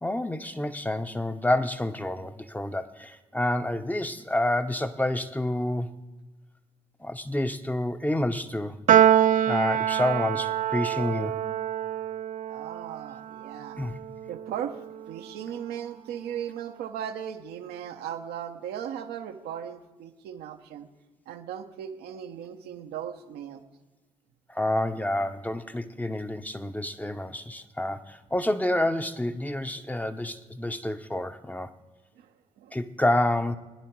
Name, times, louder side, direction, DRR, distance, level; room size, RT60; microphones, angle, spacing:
voice 1, 0.0-5.9 7.0-8.8 9.5-11.5 13.8-13.9 24.5-31.7 32.7-33.6, left 1 dB, 10° left, 9 dB, 0.8 m, -28 dB
Piano, 8.9-15.4, right 10 dB, 55° right, 0.4 m, -25 dB
voice 2, 12.5-13.8 14.3-14.8 15.1-20.9 21.3-23.6 32.2-32.8, right 9 dB, 80° right, 6 dB, 0.9 m, -37 dB
17.5 x 10.0 x 4.6 m, 1.3 s
hypercardioid pair, 45°, 17 cm